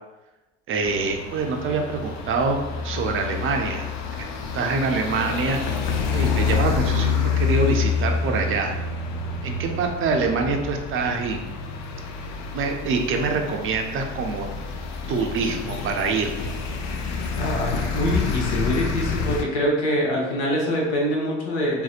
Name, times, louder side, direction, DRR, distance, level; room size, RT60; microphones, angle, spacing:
voice 1, 0.7-3.9 4.5-5.6 6.1-8.8 9.4-11.4 12.5-14.5 15.1-16.3, right 4 dB, 40° right, 3 dB, 0.4 m, -25 dB
sound 1, 0.8-19.4, left 5 dB, 55° left, 0.5 m, -28 dB
voice 2, 17.4-21.8, equal, 75° left, -2 dB, 0.8 m, -24 dB
2.6 x 2.1 x 2.4 m, 1.1 s
supercardioid pair, 80°, 35 cm